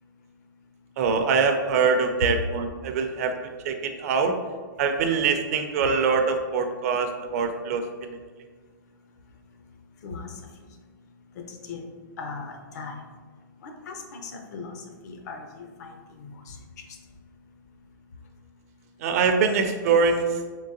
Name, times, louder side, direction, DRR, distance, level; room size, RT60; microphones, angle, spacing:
voice 1, 1.0-3.3 3.6-4.4 4.8-8.2 19.0-20.4, right 5 dB, 50° right, 6 dB, 0.4 m, -23 dB
voice 2, 11.5-11.8 12.2-13.0 13.6-14.7 15.0-15.9 16.2-16.6, left 4 dB, 55° left, 4 dB, 0.6 m, -38 dB
3.7 x 3.1 x 2.7 m, 1.5 s
hypercardioid pair, 145°, 11 cm